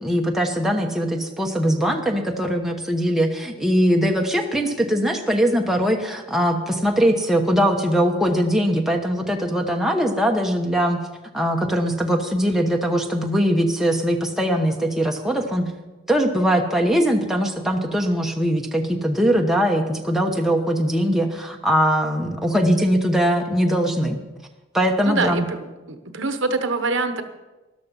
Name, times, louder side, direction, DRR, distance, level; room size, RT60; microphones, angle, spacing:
voice 1, 0.0-11.0 11.3-15.6 16.1-24.2 24.7-25.5, equal, ahead, 1 dB, 1.1 m, -21 dB
voice 2, 25.1-27.2, right 3 dB, 65° right, 8 dB, 1.1 m, -25 dB
13.0 x 12.0 x 5.4 m, 1.1 s
head